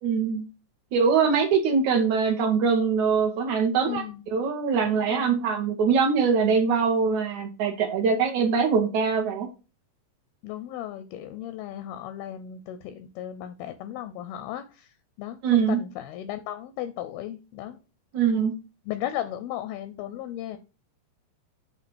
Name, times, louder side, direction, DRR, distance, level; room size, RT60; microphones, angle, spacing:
voice 1, 0.0-0.4 0.9-4.1 4.3-9.5 15.4-15.8 18.1-18.5, right 5 dB, 65° right, 2 dB, 2.0 m, -23 dB
voice 2, 3.9-4.2 5.0-5.4 10.4-14.9 15.2-17.8 18.9-20.6, left 12 dB, 80° left, 10 dB, 2.3 m, -35 dB
8.3 x 2.8 x 6.2 m, 0.31 s
omnidirectional pair, 4.8 m